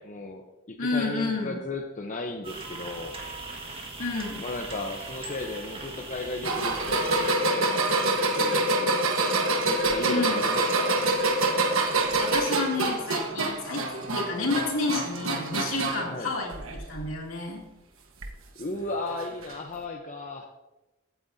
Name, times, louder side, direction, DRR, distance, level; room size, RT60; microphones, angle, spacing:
voice 1, 0.0-3.1 4.4-9.2 9.6-11.0 16.1-16.3 18.6-20.5, left 2 dB, 35° left, 2 dB, 0.8 m, -35 dB
voice 2, 0.8-1.6 4.0-4.5 10.1-10.5 12.2-17.6, left 3 dB, 70° left, -2 dB, 2.8 m, -30 dB
sound 1, 2.4-7.3, right 3 dB, 25° right, 1.6 m, -40 dB
sound 2, 6.4-16.1 16.5-17.1 18.2-18.3 19.4-19.5, right 2 dB, 70° right, 1.3 m, -26 dB
15.5 x 9.2 x 2.7 m, 1.0 s
head